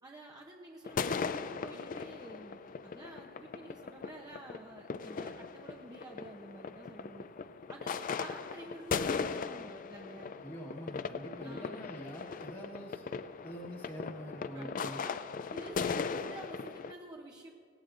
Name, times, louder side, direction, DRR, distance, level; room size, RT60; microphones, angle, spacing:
voice 1, 0.0-7.3 7.7-10.3 11.4-11.7 14.5-15.2 15.5-17.5, right 1 dB, 20° right, 0 dB, 0.7 m, -50 dB
sound 1, 0.8-16.9, left 5 dB, 40° left, 0.4 m, -38 dB
voice 2, 10.4-13.0 13.4-15.0, equal, 25° left, -5 dB, 1.4 m, -45 dB
19.0 x 16.5 x 2.5 m, 2.4 s
head